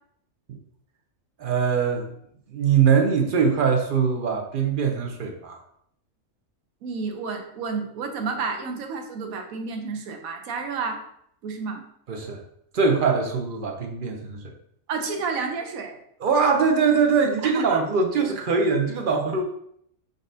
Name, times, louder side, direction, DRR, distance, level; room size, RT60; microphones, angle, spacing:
voice 1, 1.4-2.1 2.5-5.6 12.1-12.4 12.7-14.5 16.2-19.4, right 5 dB, 55° right, 3 dB, 0.6 m, -22 dB
voice 2, 6.8-11.0 11.4-11.8 14.9-16.0 17.4-17.9, right 4 dB, 85° right, 4 dB, 1.2 m, -30 dB
4.9 x 3.9 x 2.6 m, 0.70 s
omnidirectional pair, 1.4 m